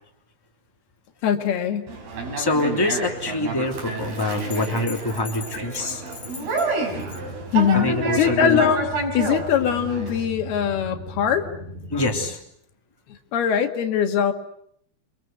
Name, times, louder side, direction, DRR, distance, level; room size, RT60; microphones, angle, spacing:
voice 1, 1.2-1.9 7.5-11.5 13.1-14.3, left 8 dB, 85° left, 6 dB, 3.9 m, -22 dB
Conversation, 1.9-10.2, right 3 dB, 80° right, 7.2 m, -29 dB
voice 2, 2.3-6.0 6.4-6.7 7.7-8.6 11.9-12.4, left 2 dB, 5° left, 2 dB, 2.7 m, -25 dB
sound 1, 6.9-12.3, right 1 dB, 50° right, 4.1 m, -38 dB
28.5 x 24.5 x 8.1 m, 0.71 s
omnidirectional pair, 4.4 m